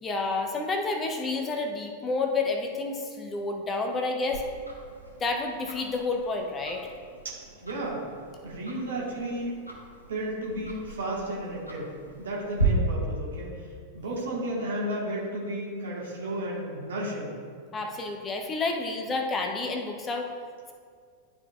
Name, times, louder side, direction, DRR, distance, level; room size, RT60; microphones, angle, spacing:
voice 1, 0.0-4.4 5.2-6.9 17.7-20.3, left 3 dB, 20° left, 3 dB, 0.9 m, -29 dB
Tick-tock, 4.3-12.6, right 1 dB, 90° left, 1.2 m, -40 dB
voice 2, 7.2-8.0 8.4-9.5 10.1-11.9 12.2-13.5 13.9-17.3, right 1 dB, 65° right, -4 dB, 1.6 m, -33 dB
11.5 x 4.8 x 2.4 m, 2.1 s
figure-of-eight pair, 90°, 0 cm